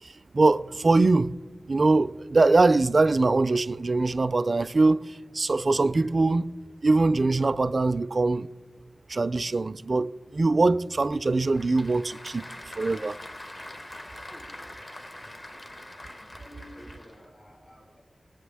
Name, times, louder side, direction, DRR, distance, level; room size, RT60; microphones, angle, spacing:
voice 1, 0.0-1.3 1.7-6.5 6.8-8.5 9.1-12.4 12.8-13.2, right 3 dB, 55° right, 0.3 m, -23 dB
Applause / Crowd, 11.1-17.3, left 1 dB, 40° left, 1.0 m, -43 dB
voice 2, 16.4-18.0, equal, 85° left, 4.7 m, -50 dB
21.0 x 7.8 x 3.4 m
wide cardioid pair, 60°, 0 cm